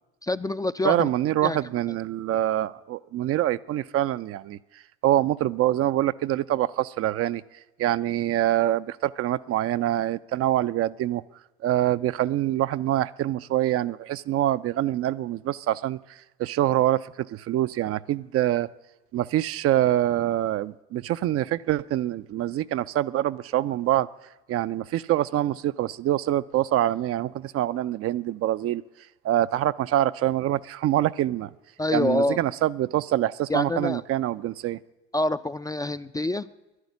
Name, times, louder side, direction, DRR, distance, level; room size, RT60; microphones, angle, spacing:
voice 1, 0.2-1.1 1.4-1.6 31.8-32.4 33.5-34.0 35.1-36.5, left 2 dB, 10° left, 11 dB, 0.4 m, -26 dB
voice 2, 0.8-7.4 7.8-11.2 11.6-18.7 19.1-24.1 24.5-28.8 29.2-31.5 31.9-34.8, right 13 dB, 45° right, 14 dB, 0.5 m, -25 dB
11.0 x 11.0 x 9.4 m, 1.0 s
hypercardioid pair, 65°, 34 cm